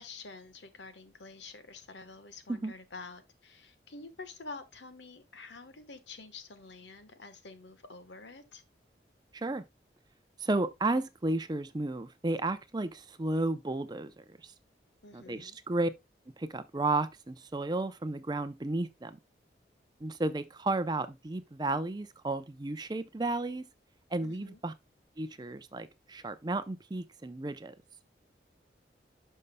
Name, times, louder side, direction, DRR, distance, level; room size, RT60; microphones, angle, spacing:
voice 1, 0.0-8.6 15.0-15.6 24.2-24.6, left 3 dB, 80° left, 1.2 m, -48 dB
voice 2, 9.3-9.6 10.4-14.5 15.1-15.9 16.4-19.2 20.0-23.6 24.1-24.7 25.2-27.8, right 2 dB, 25° right, 0.5 m, -33 dB
12.0 x 5.4 x 2.2 m
head